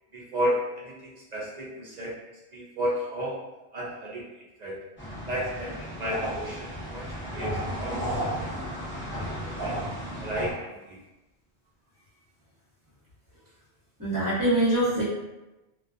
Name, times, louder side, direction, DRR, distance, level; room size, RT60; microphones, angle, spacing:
voice 1, 0.1-2.1 2.5-3.4 3.7-4.2 4.6-4.8 5.3-8.9 9.4-9.7 10.2-11.0, equal, 55° right, -5 dB, 0.5 m, -33 dB
sound 1, 5.0-10.5, equal, 15° left, 0.6 m, -33 dB
voice 2, 14.0-15.0, right 1 dB, 20° right, -10 dB, 0.9 m, -24 dB
2.3 x 2.2 x 2.5 m, 1.0 s
omnidirectional pair, 1.2 m